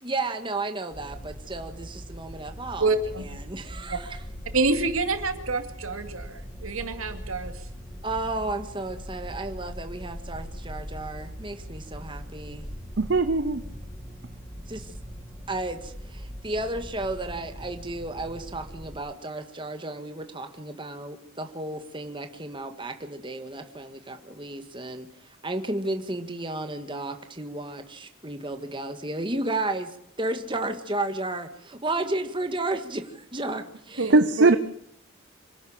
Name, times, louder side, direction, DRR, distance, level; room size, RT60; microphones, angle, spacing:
voice 1, 0.0-2.9 3.2-4.2 8.0-12.7 14.7-14.9 15.5-34.2, right 2 dB, 25° right, 7 dB, 1.9 m, -33 dB
sound 1, 0.9-19.0, equal, 10° left, 5.3 m, -41 dB
voice 2, 2.8-3.3 3.9-4.0 4.5-7.6 34.0-34.5, right 3 dB, 85° right, 7 dB, 2.5 m, -27 dB
voice 3, 13.0-13.6 34.1-34.6, right 3 dB, 55° right, 11 dB, 0.8 m, -19 dB
26.0 x 11.5 x 8.9 m, 0.75 s
head